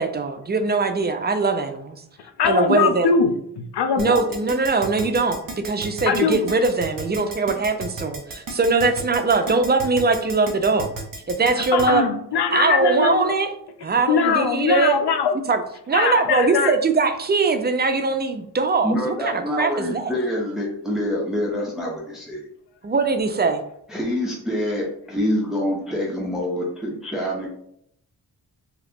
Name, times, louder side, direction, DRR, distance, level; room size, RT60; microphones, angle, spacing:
voice 1, 0.0-2.0 2.4-3.1 4.0-5.4 5.6-10.9 11.3-12.1 12.5-13.5 13.8-14.9 15.5-15.6 15.9-19.0 19.2-20.0 22.8-23.6, right 4 dB, 25° right, 7 dB, 0.5 m, -21 dB
voice 2, 2.2-4.3 6.1-6.4 11.6-13.4 14.1-15.4 15.9-16.7, left 6 dB, 75° left, 7 dB, 0.6 m, -21 dB
Keyboard (musical), 4.0-11.9, right 3 dB, 55° right, 0.9 m, -33 dB
voice 3, 18.8-22.4 23.9-27.5, left 1 dB, ahead, -3 dB, 0.8 m, -26 dB
2.8 x 2.4 x 3.5 m, 0.71 s
cardioid pair, 45°, 40 cm